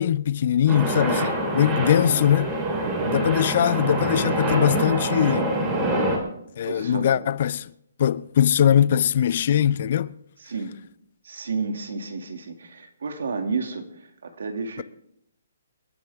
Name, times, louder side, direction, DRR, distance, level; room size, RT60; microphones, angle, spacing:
voice 1, 0.0-2.5 3.1-5.6 6.6-7.7 8.0-10.1, left 10 dB, 45° left, 0.5 m, -21 dB
sound 1, 0.7-6.2, right 1 dB, 20° right, 3.7 m, -25 dB
voice 2, 1.9-2.3 2.8-3.2 6.6-7.3 10.4-10.7 11.2-14.8, right 4 dB, 75° right, 2.4 m, -31 dB
28.5 x 9.5 x 3.6 m
hypercardioid pair, 160°, 0 cm